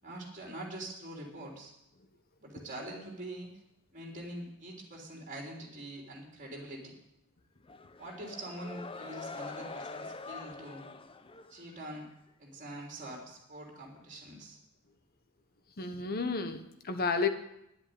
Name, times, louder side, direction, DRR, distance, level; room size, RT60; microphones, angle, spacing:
voice 1, 0.0-1.7 2.4-3.6 3.9-6.9 8.0-10.8 11.5-12.1 12.4-14.6, right 1 dB, 35° right, -1 dB, 3.5 m, -44 dB
sound 1, 7.6-12.1, left 3 dB, 25° left, 0.6 m, -45 dB
voice 2, 15.8-17.3, left 4 dB, 45° left, 8 dB, 1.2 m, -31 dB
10.5 x 8.4 x 9.5 m, 0.82 s
head